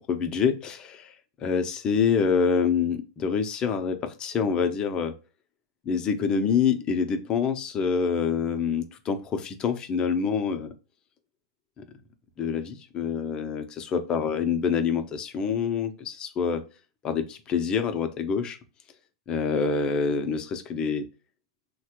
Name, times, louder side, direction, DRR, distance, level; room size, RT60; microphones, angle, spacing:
voice 1, 0.1-1.1 1.4-5.1 5.9-10.7 11.8-11.9 12.4-16.6 17.0-18.6 19.3-21.1, left 6 dB, 30° left, 7 dB, 0.6 m, -26 dB
3.1 x 2.2 x 3.0 m, 0.32 s
hypercardioid pair, 120°, 3 cm